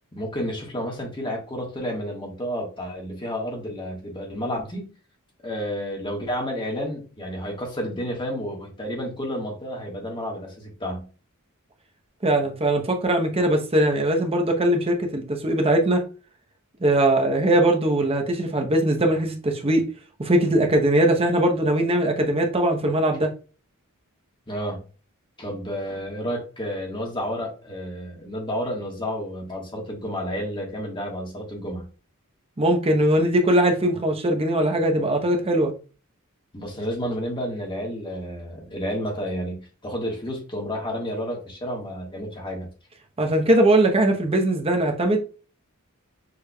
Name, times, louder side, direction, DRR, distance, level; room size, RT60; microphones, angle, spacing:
voice 1, 0.1-4.9 5.4-11.1 24.5-24.8 25.4-31.8 36.5-42.7, equal, 20° left, 1.4 m, -31 dB
voice 2, 12.2-16.0 16.8-19.8 20.2-23.3 32.6-35.7 43.2-45.2, right 1 dB, 25° right, 0.8 m, -20 dB
6.5 x 3.3 x 2.2 m
head